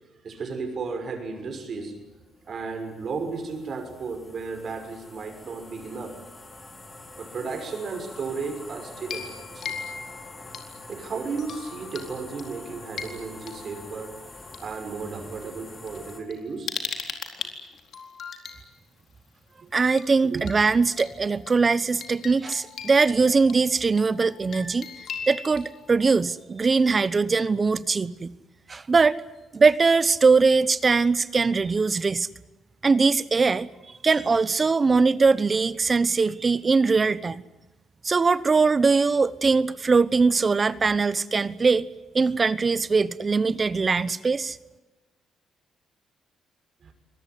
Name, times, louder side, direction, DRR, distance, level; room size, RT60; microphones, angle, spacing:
voice 1, 0.2-2.0 2.5-6.2 7.2-9.8 10.9-14.2 14.6-16.8 20.3-20.5 46.8-46.9, right 4 dB, 50° right, 6 dB, 6.2 m, -34 dB
sound 1, 1.8-16.2, left 2 dB, 25° left, 5.1 m, -45 dB
sound 2, 9.0-10.9 11.4-12.1 12.4-14.6 15.4-15.5 15.9-18.6 20.0-20.1 20.5-20.6 20.9-26.3, left 6 dB, 60° left, 4.1 m, -39 dB
voice 2, 19.7-24.9 25.3-28.3 28.7-29.2 29.5-32.3 32.8-33.7 34.0-37.4 38.0-41.9 42.1-44.6, right 4 dB, 30° right, 16 dB, 1.0 m, -21 dB
25.0 x 19.5 x 9.7 m, 1.1 s
cardioid pair, 90°, 0 cm